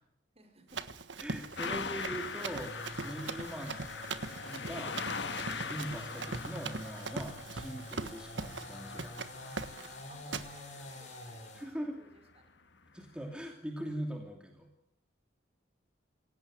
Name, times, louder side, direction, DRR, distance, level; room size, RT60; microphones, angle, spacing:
voice 1, 0.3-0.8 3.0-3.3 10.1-12.6, right 1 dB, 35° right, 7 dB, 5.0 m, -59 dB
Run, 0.7-8.7 9.0-9.3 9.6-9.9 10.3-10.5, right 4 dB, 75° right, 1.5 m, -41 dB
voice 2, 1.2-3.8 4.4-9.5 11.5-12.0 12.9-14.7, right 1 dB, 5° right, 2 dB, 2.9 m, -42 dB
sound 1, 1.4-11.7, left 1 dB, 40° left, 7.8 m, -48 dB
sound 2, 1.6-10.9 12.1-12.2 13.0-13.1, left 5 dB, 65° left, 1.8 m, -42 dB
27.0 x 18.0 x 9.2 m, 0.82 s
head